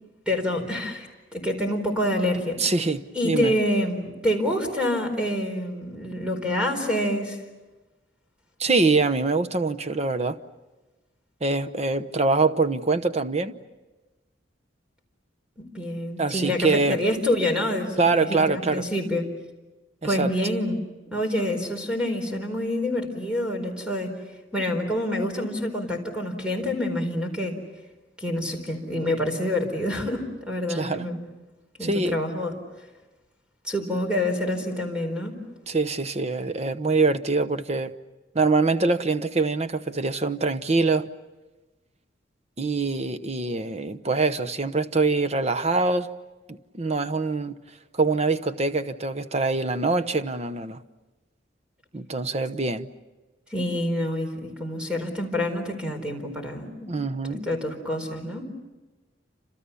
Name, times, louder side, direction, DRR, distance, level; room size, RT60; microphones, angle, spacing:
voice 1, 0.3-2.6 3.1-7.4 15.6-19.2 20.0-24.1 24.5-27.5 28.2-31.2 31.8-32.6 33.6-35.4 53.5-56.9 57.5-58.5, left 1 dB, 5° right, 3 dB, 4.3 m, -27 dB
voice 2, 2.6-3.5 8.6-10.4 11.4-13.6 16.2-17.0 18.0-18.8 20.0-20.3 30.7-31.0 31.8-32.2 35.7-37.9 38.3-41.1 42.6-46.1 46.7-47.6 47.9-50.8 51.9-52.9 56.9-57.5, right 3 dB, 35° right, 11 dB, 0.9 m, -24 dB
29.0 x 27.0 x 7.1 m, 1.2 s
head